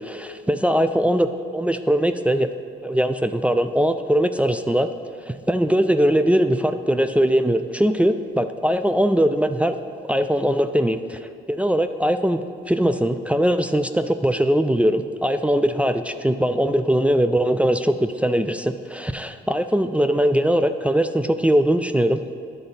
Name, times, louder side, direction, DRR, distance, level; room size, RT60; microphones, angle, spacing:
voice 1, 0.0-2.5 2.8-4.9 5.3-9.8 10.1-11.2 11.5-22.4, equal, 5° right, 8 dB, 0.3 m, -21 dB
10.5 x 4.0 x 5.6 m, 2.4 s
cardioid pair, 90°, 20 cm